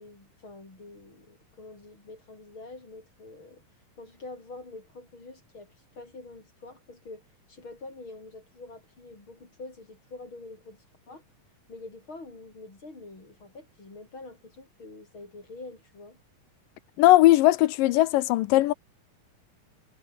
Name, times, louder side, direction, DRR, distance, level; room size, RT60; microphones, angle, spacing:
voice 1, 0.0-3.6 4.0-11.2 11.7-16.2, left 2 dB, 35° left, 6.8 m, -46 dB
voice 2, 17.0-18.7, left 16 dB, 75° left, 2.3 m, -19 dB
omnidirectional pair, 4.1 m